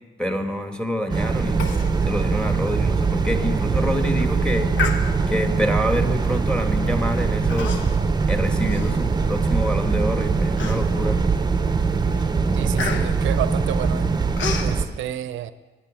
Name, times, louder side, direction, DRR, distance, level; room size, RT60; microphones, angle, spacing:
voice 1, 0.2-1.6 2.1-4.7 5.3-7.8 8.3-11.2, equal, 5° left, 5 dB, 1.2 m, -26 dB
sound 1, 1.1-14.9, right 4 dB, 20° right, 0.6 m, -22 dB
Human voice, 1.6-1.9 2.2-2.3 2.8-3.0 3.5-3.8 4.7-5.5 6.2-6.5 7.5-8.1 8.5-9.5 10.0-10.1 10.6-11.1 11.6-11.8 12.1-14.7, left 5 dB, 70° left, 1.1 m, -31 dB
voice 2, 12.5-14.1 14.6-15.5, right 11 dB, 75° right, 13 dB, 0.6 m, -30 dB
9.0 x 8.9 x 6.2 m, 1.3 s
cardioid pair, 90°, 20 cm